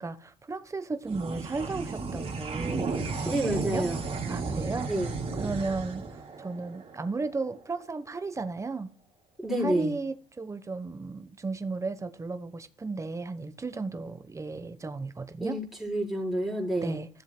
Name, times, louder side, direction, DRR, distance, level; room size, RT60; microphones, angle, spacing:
voice 1, 0.0-3.8 4.3-4.9 5.4-8.9 9.6-15.6 16.8-17.1, right 3 dB, 15° right, 1.1 m, -34 dB
sound 1, 1.0-7.8, right 4 dB, 35° right, 2.8 m, -34 dB
voice 2, 3.2-4.0 4.9-5.1 9.4-10.0 15.4-17.0, right 1 dB, ahead, 4.8 m, -29 dB
15.5 x 7.5 x 2.3 m
cardioid pair, 110°, 17 cm